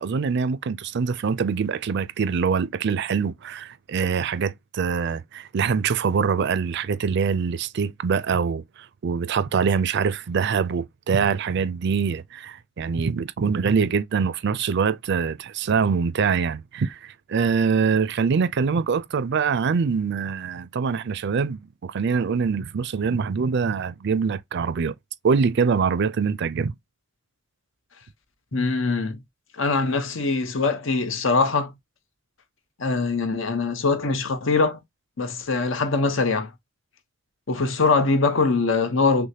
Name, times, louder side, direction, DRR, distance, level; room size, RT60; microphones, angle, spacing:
voice 1, 0.0-8.6 9.0-24.9 25.2-26.7, right 5 dB, 60° right, 0.4 m, -24 dB
voice 2, 28.5-29.2 29.5-31.7 32.8-34.8 35.2-36.5 37.5-39.3, left 3 dB, 70° left, 0.9 m, -22 dB
6.2 x 2.1 x 2.8 m
head